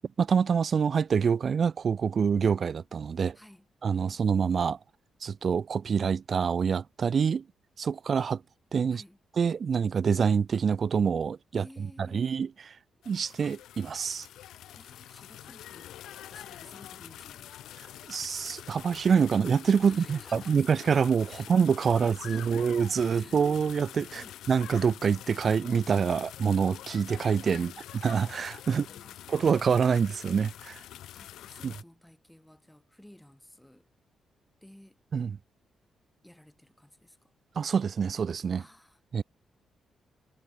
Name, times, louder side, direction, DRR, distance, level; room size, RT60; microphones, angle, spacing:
voice 1, 0.2-3.4 3.8-4.8 5.2-7.4 7.8-8.4 8.7-9.0 9.4-11.6 12.1-12.5 13.1-14.3 18.1-27.7 28.0-28.9 29.3-30.8 31.6-31.7 35.1-35.3 37.6-38.6 39.1-39.2, right 6 dB, 50° right, 0.4 m, -26 dB
voice 2, 3.3-3.7 8.9-9.2 11.6-12.3 14.7-17.5 19.8-20.8 21.3-21.5 21.8-22.7 23.1-23.7 24.1-24.4 27.5-27.8 28.7-29.4 31.1-33.9 34.6-35.0 36.2-37.3 38.6-39.0, left 1 dB, 5° left, 6.9 m, -54 dB
sound 1, 13.0-31.8, left 12 dB, 85° left, 2.6 m, -46 dB
cardioid pair, 85°, 0 cm